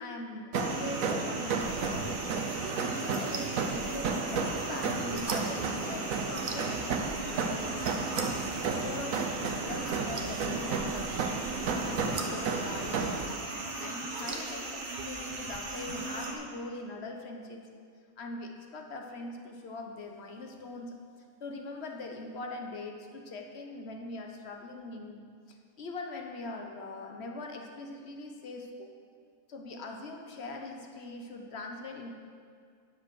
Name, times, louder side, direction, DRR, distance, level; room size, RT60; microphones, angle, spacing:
voice 1, 0.0-8.0 8.6-17.7 18.2-21.0 21.4-28.9 29.5-32.1, left 2 dB, 50° left, 3 dB, 1.3 m, -42 dB
sound 1, 0.5-16.3, right 2 dB, 60° right, 1.7 m, -39 dB
sound 2, 0.5-13.2, right 5 dB, 80° right, 1.2 m, -33 dB
sound 3, 1.6-16.3, right 3 dB, 40° right, 1.0 m, -43 dB
10.5 x 7.4 x 6.2 m, 2.2 s
omnidirectional pair, 1.4 m